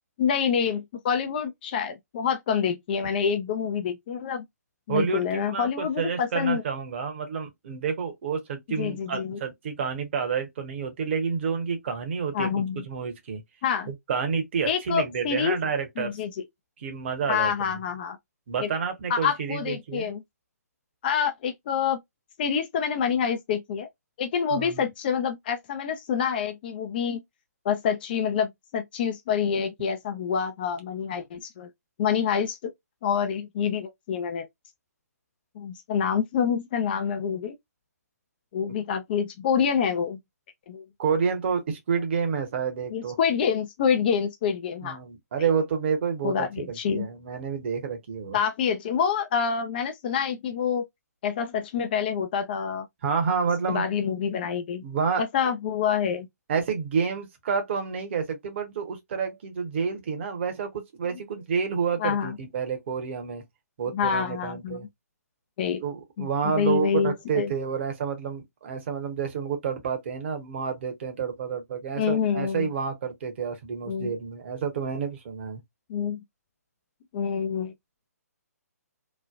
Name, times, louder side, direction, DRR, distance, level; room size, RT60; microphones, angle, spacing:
voice 1, 0.2-4.5 4.9-6.6 8.7-9.4 12.3-12.8 13.6-13.9 14.7-15.6 16.0-16.4 17.3-18.2 18.6-18.8 19.1-20.2 21.0-22.0 22.4-23.9 24.2-27.2 27.6-31.7 32.0-32.7 33.0-34.5 35.6-37.6 38.5-40.2 40.7-40.9 42.9-45.0 46.2-47.1 48.3-50.8 51.2-52.9 53.3-53.4 53.7-54.8 55.2-56.3 61.1-61.2 62.0-62.4 63.9-64.9 65.6-65.8 66.2-67.5 71.9-72.7 73.9-74.1 75.9-76.2 77.1-77.7, left 7 dB, 35° left, 0.4 m, -27 dB
voice 2, 4.9-12.5 12.8-13.4 13.9-16.1 16.8-17.5 18.5-20.1 24.5-24.8 41.0-43.1 44.8-48.4 53.0-53.8 54.8-55.2 56.5-63.4 63.8-64.9 65.8-75.6, right 6 dB, 45° right, 1.0 m, -29 dB
3.2 x 2.1 x 2.4 m
figure-of-eight pair, 135°, 9 cm